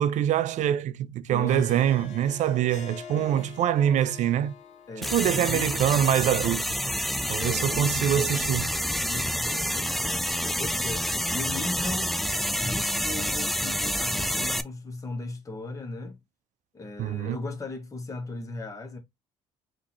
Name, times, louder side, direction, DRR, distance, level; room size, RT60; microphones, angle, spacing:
voice 1, 0.0-4.6 5.0-6.7 7.3-8.7 17.0-17.4, right 10 dB, 60° right, 0.5 m, -25 dB
Harp, 1.3-6.7, left 7 dB, 60° left, 0.9 m, -46 dB
voice 2, 1.3-1.9 3.1-3.4 4.9-5.7 7.4-8.4 9.0-16.2 16.7-19.0, left 2 dB, 25° left, 1.4 m, -37 dB
sound 1, 5.0-14.6, equal, ahead, 0.3 m, -28 dB
3.7 x 2.8 x 3.0 m
supercardioid pair, 65°, 14 cm